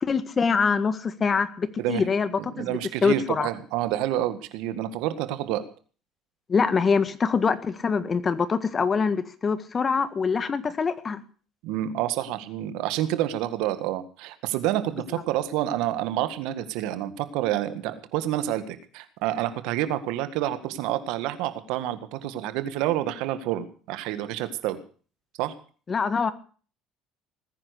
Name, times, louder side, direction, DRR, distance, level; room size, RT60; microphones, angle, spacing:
voice 1, 0.0-2.3 2.6-3.5 6.5-11.2 25.9-26.3, left 5 dB, 35° left, 13 dB, 1.7 m, -24 dB
voice 2, 2.4-5.6 11.6-24.8 25.4-25.5, right 13 dB, 75° right, 11 dB, 1.8 m, -28 dB
19.5 x 10.0 x 6.5 m, 0.41 s
supercardioid pair, 75°, 0 cm